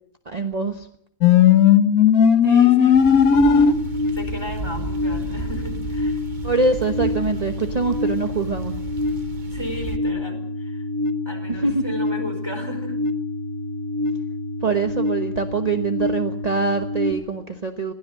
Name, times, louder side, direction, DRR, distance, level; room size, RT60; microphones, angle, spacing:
voice 1, 0.3-0.9 6.4-8.8 11.5-11.9 14.6-17.9, right 4 dB, 30° right, 6 dB, 0.8 m, -24 dB
sound 1, 1.2-17.1, left 6 dB, 50° left, 1.5 m, -21 dB
voice 2, 2.4-3.7 4.1-6.2 9.5-10.9 11.2-13.0, left 1 dB, 10° left, 5 dB, 4.7 m, -35 dB
sound 2, 2.9-10.0, right 4 dB, 55° right, 0.5 m, -35 dB
21.5 x 16.0 x 7.6 m, 0.69 s
omnidirectional pair, 2.3 m